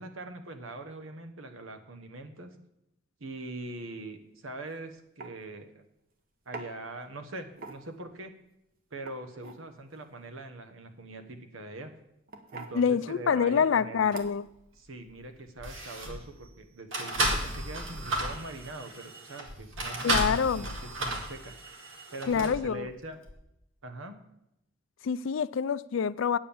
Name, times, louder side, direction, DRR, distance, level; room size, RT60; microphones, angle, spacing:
voice 1, 0.0-2.5 3.2-5.8 6.5-8.3 8.9-11.9 12.5-14.1 14.8-21.5 22.1-23.2 23.8-24.2, right 2 dB, 85° right, 8 dB, 1.2 m, -42 dB
sound 1, 4.5-4.7 5.2-5.3 6.5-6.7 7.5-8.0 8.9-9.6 11.3-11.5 12.3-12.8 13.7-13.8 14.1-14.5, right 3 dB, 45° right, 1.1 m, -43 dB
voice 2, 12.7-14.4 20.0-20.7 22.3-22.9 25.0-26.4, left 6 dB, 70° left, 17 dB, 0.4 m, -26 dB
sound 2, 14.1-14.3 15.1-15.2 15.6-16.3 16.9-22.6 23.3-23.4, right 1 dB, 70° right, 1.8 m, -33 dB
8.9 x 7.5 x 7.1 m, 0.83 s
head